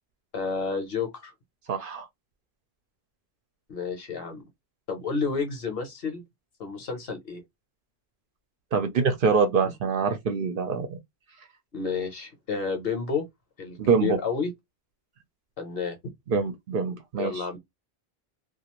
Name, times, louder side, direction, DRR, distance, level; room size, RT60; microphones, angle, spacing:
voice 1, 0.3-1.3 3.7-4.4 4.9-6.2 6.6-7.4 11.7-13.2 13.6-14.5 15.6-16.0 17.2-17.6, left 5 dB, 65° left, 1.0 m, -30 dB
voice 2, 1.7-2.1 8.7-10.9 13.8-14.2 16.3-17.6, right 5 dB, 60° right, 0.7 m, -25 dB
2.4 x 2.3 x 2.9 m
omnidirectional pair, 1.1 m